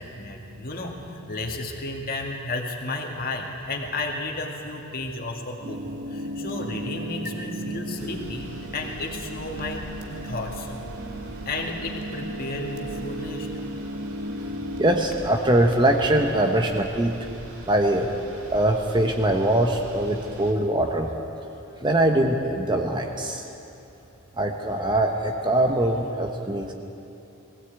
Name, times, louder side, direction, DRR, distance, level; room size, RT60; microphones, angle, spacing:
voice 1, 0.0-5.8 6.1-10.8 11.5-13.5, left 2 dB, 45° left, 1 dB, 2.1 m, -33 dB
sound 1, 5.6-15.1, right 1 dB, 55° right, 1.7 m, -35 dB
sound 2, 8.0-20.5, right 1 dB, 80° right, 2.9 m, -43 dB
voice 2, 14.8-17.3 17.6-18.1 18.5-21.1 21.8-23.4 24.4-26.7, right 1 dB, 20° right, 3 dB, 1.0 m, -22 dB
21.0 x 16.5 x 8.3 m, 2.9 s
head